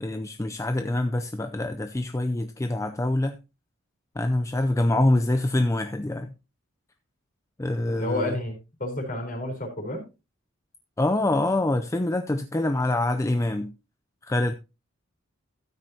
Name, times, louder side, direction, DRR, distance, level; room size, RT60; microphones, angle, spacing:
voice 1, 0.0-3.4 4.2-6.3 7.6-8.3 11.0-13.7 14.2-14.5, left 1 dB, 15° left, 0.4 m, -25 dB
voice 2, 7.9-10.0, left 1 dB, 45° left, 4.0 m, -30 dB
13.0 x 9.1 x 2.8 m
head